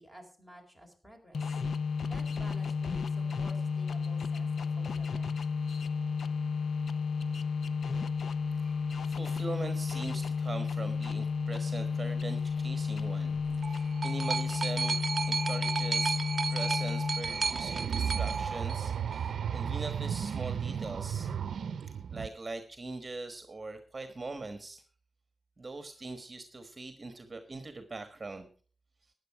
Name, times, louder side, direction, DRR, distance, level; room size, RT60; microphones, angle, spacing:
voice 1, 0.0-1.6 2.0-5.3, equal, 10° left, 3 dB, 4.2 m, -52 dB
sound 1, 1.3-17.5, left 5 dB, 70° left, 0.7 m, -32 dB
voice 2, 8.3-21.3 22.1-24.8 25.6-28.5, right 3 dB, 30° right, 8 dB, 1.4 m, -42 dB
sound 2, 13.3-19.3 20.2-20.3, right 4 dB, 50° right, 0.6 m, -33 dB
sound 3, 17.2-22.3, right 8 dB, 85° right, 0.7 m, -34 dB
13.0 x 9.6 x 4.8 m, 0.41 s
wide cardioid pair, 95°, 0 cm